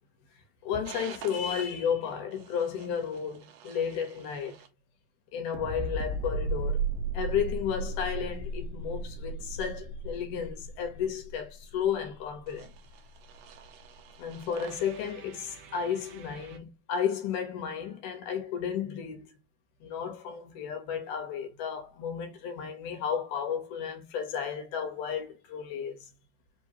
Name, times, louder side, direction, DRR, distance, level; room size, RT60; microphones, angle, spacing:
voice 1, 0.6-4.6 5.3-6.9 7.1-12.7 14.2-19.4 19.8-26.1, left 7 dB, 75° left, 2.4 m, -33 dB
sound 1, 0.9-1.6 2.3-4.7 5.5-16.6, right 3 dB, 75° right, 1.6 m, -37 dB
5.3 x 2.9 x 2.8 m
omnidirectional pair, 3.8 m